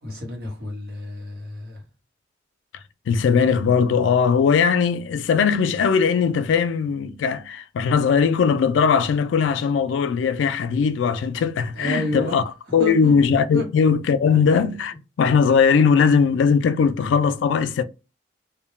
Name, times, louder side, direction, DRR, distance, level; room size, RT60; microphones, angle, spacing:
voice 1, 0.0-1.8 11.7-12.4 12.8-13.2 13.5-13.6, equal, 55° right, 1.1 m, -30 dB
voice 2, 3.1-12.4 12.7-17.8, left 6 dB, 85° left, 0.3 m, -19 dB
2.2 x 2.1 x 3.0 m
head